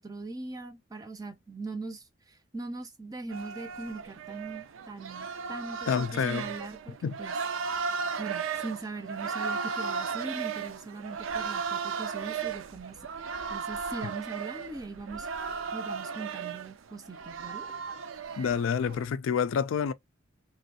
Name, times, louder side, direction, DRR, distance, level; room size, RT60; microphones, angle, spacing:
voice 1, 0.0-7.4 8.2-13.1 13.5-15.3 15.7-17.7, right 3 dB, 20° right, 0.5 m, -41 dB
sound 1, 3.3-19.1, right 5 dB, 85° right, 0.4 m, -35 dB
voice 2, 5.9-6.5 7.0-7.2 18.4-19.9, left 7 dB, 85° left, 0.3 m, -28 dB
3.0 x 2.6 x 2.7 m
head